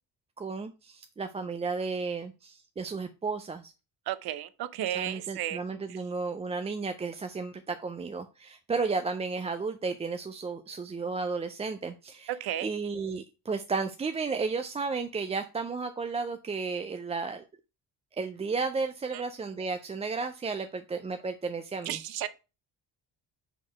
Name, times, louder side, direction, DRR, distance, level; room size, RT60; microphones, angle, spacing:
voice 1, 0.4-3.7 4.9-12.3 12.6-17.4 18.2-22.0, right 4 dB, 15° right, 0.3 m, -33 dB
voice 2, 4.1-5.6 5.9-6.0 12.3-12.7 19.1-19.2 21.8-22.3, right 12 dB, 70° right, 0.7 m, -33 dB
5.1 x 3.9 x 5.7 m
cardioid pair, 140°, 38 cm